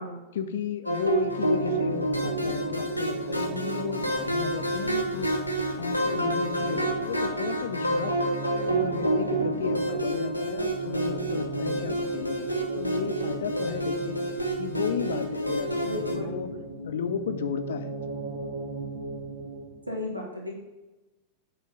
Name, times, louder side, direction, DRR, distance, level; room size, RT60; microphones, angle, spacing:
voice 1, 0.3-5.3 5.7-8.2 8.7-14.2 14.6-16.5 16.8-18.0, left 7 dB, 60° left, 9 dB, 0.5 m, -34 dB
sound 1, 0.9-16.1, right 1 dB, 90° left, 0.9 m, -29 dB
sound 2, 1.2-20.0, right 2 dB, 60° right, 1.1 m, -37 dB
voice 2, 15.8-16.4 19.9-20.5, left 1 dB, 85° right, 0 dB, 1.1 m, -34 dB
8.7 x 3.1 x 5.2 m, 1.1 s
figure-of-eight pair, 90°, 0 cm